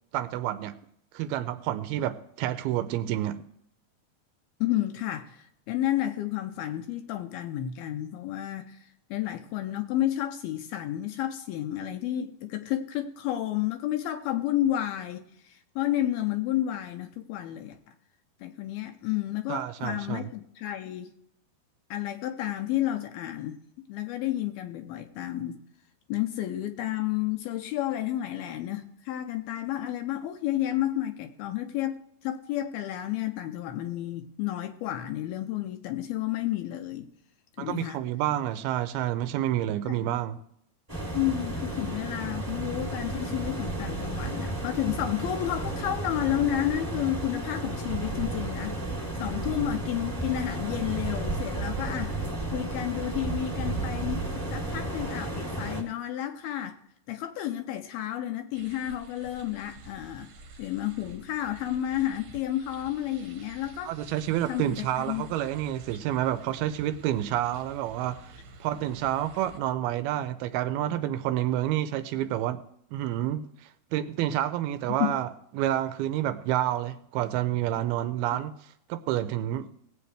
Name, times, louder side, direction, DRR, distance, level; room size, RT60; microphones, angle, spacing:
voice 1, 0.1-0.8 1.1-3.4 19.5-20.3 37.6-40.4 63.8-72.6 72.9-75.3 75.5-78.5 78.9-79.7, right 12 dB, 80° right, 2.4 m, -29 dB
voice 2, 4.6-17.9 18.4-21.1 21.9-23.6 23.9-25.6 26.1-37.1 37.6-38.0 39.8-40.1 41.1-48.8 49.2-52.2 52.5-54.2 54.5-56.8 57.1-60.3 60.6-63.9 64.5-65.2 74.9-75.1, left 12 dB, 80° left, 2.5 m, -31 dB
sound 1, 40.9-55.8, right 2 dB, 5° right, 2.0 m, -33 dB
sound 2, 58.5-69.6, right 2 dB, 65° right, 2.2 m, -50 dB
19.0 x 8.3 x 3.3 m
omnidirectional pair, 4.7 m